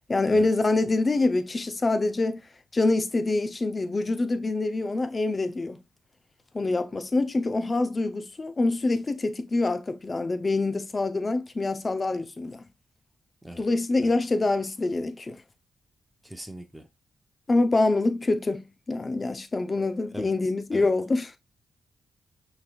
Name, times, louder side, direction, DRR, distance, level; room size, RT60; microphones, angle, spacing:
voice 1, 0.1-2.4 2.7-5.8 6.5-12.6 13.6-15.4 17.5-21.4, left 2 dB, 35° left, 0.7 m, -25 dB
voice 2, 16.2-16.9 20.1-20.3 20.7-20.9, right 1 dB, 5° right, 0.8 m, -41 dB
5.9 x 3.4 x 2.4 m
cardioid pair, 75°, 0 cm